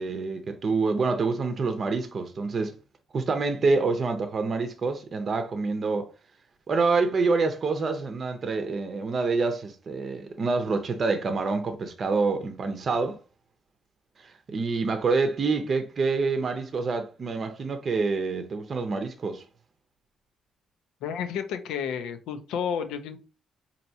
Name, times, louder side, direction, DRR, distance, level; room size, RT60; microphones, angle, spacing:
voice 1, 0.0-2.8 3.1-6.1 6.7-13.2 14.2-19.4, right 4 dB, 45° right, 0.6 m, -27 dB
voice 2, 21.0-23.2, left 7 dB, 90° left, 0.6 m, -31 dB
4.4 x 2.7 x 2.7 m
cardioid pair, 90°, 0 cm